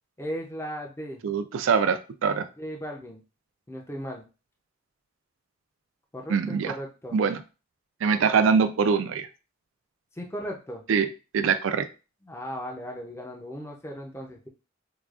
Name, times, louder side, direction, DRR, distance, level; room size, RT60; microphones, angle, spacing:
voice 1, 0.2-1.2 2.6-3.2 3.7-4.3 6.1-7.2 10.2-10.8 12.2-14.5, equal, 15° left, 0 dB, 0.5 m, -36 dB
voice 2, 1.2-2.5 6.3-6.7 7.1-7.4 8.0-9.3 10.9-11.1 11.3-11.9, right 6 dB, 85° right, 9 dB, 0.4 m, -23 dB
4.8 x 2.3 x 2.4 m, 0.32 s
head